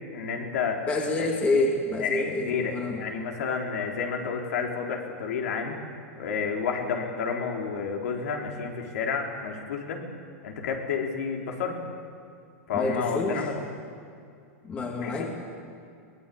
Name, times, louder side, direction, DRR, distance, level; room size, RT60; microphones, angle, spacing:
voice 1, 0.1-0.8 1.2-1.3 2.0-5.8 6.2-10.0 10.4-11.8 12.7-13.6 15.0-15.3, left 6 dB, 70° left, 1 dB, 4.1 m, -30 dB
voice 2, 0.9-3.0 12.7-13.4 14.6-15.3, left 2 dB, 15° left, 0 dB, 2.3 m, -27 dB
22.5 x 18.0 x 8.7 m, 2.4 s
supercardioid pair, 165°, 8 cm